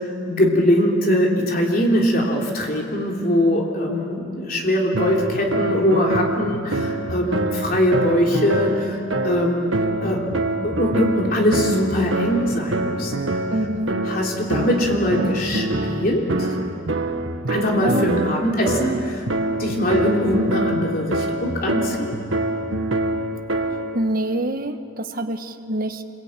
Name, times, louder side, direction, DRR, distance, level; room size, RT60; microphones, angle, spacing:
voice 1, 0.0-13.2 14.1-16.5 17.5-19.2 19.6-22.2, equal, 45° left, -1 dB, 3.4 m, -22 dB
sound 1, 4.9-24.0, right 2 dB, 80° right, 1.5 m, -25 dB
voice 2, 13.5-14.0 17.8-18.3 23.9-26.0, right 1 dB, 45° right, 7 dB, 1.2 m, -26 dB
26.5 x 21.5 x 9.0 m, 2.8 s
head